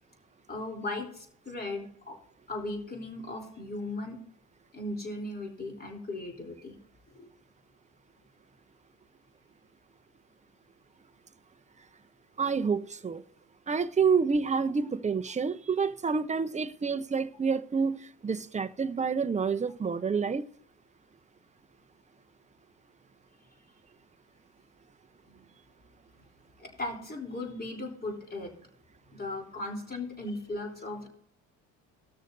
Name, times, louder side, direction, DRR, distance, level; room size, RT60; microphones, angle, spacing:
voice 1, 0.5-2.2 2.5-4.2 4.7-6.8 7.1-7.3 25.2-25.5 26.6-28.7 29.1-31.1, left 2 dB, 25° left, 3.4 m, -37 dB
voice 2, 12.4-13.2 13.7-20.4, right 5 dB, 20° right, 0.7 m, -28 dB
19.0 x 6.5 x 2.6 m
supercardioid pair, 85°, 37 cm